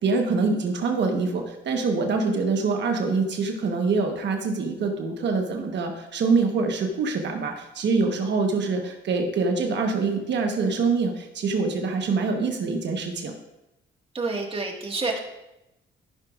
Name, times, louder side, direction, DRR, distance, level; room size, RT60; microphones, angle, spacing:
voice 1, 0.0-13.4, right 4 dB, 60° right, 3 dB, 1.2 m, -25 dB
voice 2, 14.1-15.2, right 3 dB, 25° right, 0 dB, 1.7 m, -28 dB
13.0 x 6.0 x 2.4 m, 0.93 s
cardioid pair, 90°, 20 cm